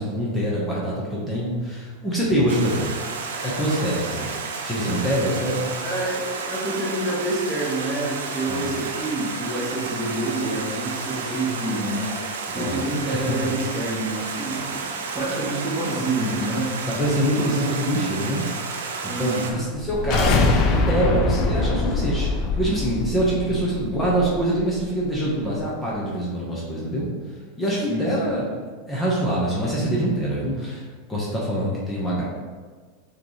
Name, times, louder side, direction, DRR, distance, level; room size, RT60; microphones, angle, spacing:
voice 1, 0.0-3.0 3.4-4.3 4.6-5.7 8.5-8.7 12.5-13.0 16.9-18.4 19.0-27.1 27.6-28.5 28.9-30.8 31.1-32.2, right 1 dB, 15° left, -6 dB, 1.0 m, -25 dB
Stream, 2.5-19.5, right 4 dB, 85° right, 0.5 m, -31 dB
voice 2, 5.8-12.1 12.5-16.7 19.0-19.6 27.9-28.1 31.4-31.6, right 2 dB, 20° right, -5 dB, 1.4 m, -28 dB
sound 1, 19.7-24.8, left 3 dB, 45° left, 0.6 m, -23 dB
5.0 x 3.1 x 3.2 m, 1.5 s
hypercardioid pair, 115°, 0 cm